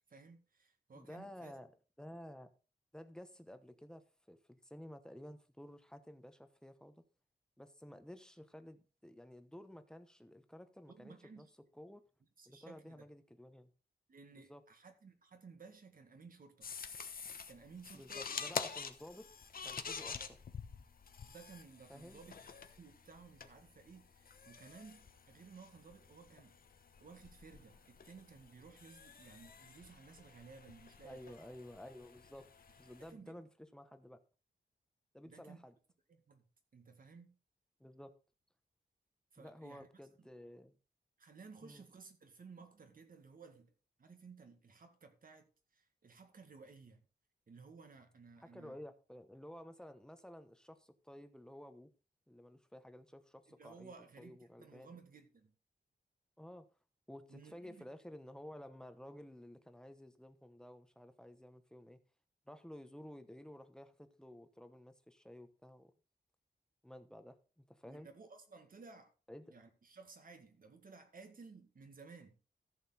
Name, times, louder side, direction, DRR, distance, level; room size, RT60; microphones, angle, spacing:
voice 1, 0.1-1.5 10.9-11.5 12.4-13.1 14.1-16.7 17.5-18.4 21.3-22.3 22.8-26.6 27.0-31.4 33.1-33.4 35.2-35.6 36.1-36.5 36.7-37.3 39.3-40.3 41.2-47.1 47.5-48.8 53.5-55.5 57.3-57.9 67.9-69.1 69.5-72.4, right 4 dB, 55° right, 1.9 m, -57 dB
voice 2, 0.9-1.7 2.0-2.5 2.9-7.0 7.6-11.5 11.7-12.0 12.5-13.7 14.3-14.6 17.9-19.3 19.6-20.4 21.9-22.2 31.0-32.5 32.8-34.2 35.1-35.7 37.8-38.1 39.4-40.8 41.6-41.8 48.4-51.9 52.3-54.9 56.4-56.7 57.1-62.0 62.5-65.9 66.8-68.1 69.3-69.5, left 1 dB, 5° left, 1.0 m, -53 dB
sound 1, 16.6-33.1, left 6 dB, 55° left, 1.1 m, -48 dB
14.5 x 6.8 x 4.2 m
wide cardioid pair, 145°, 17 cm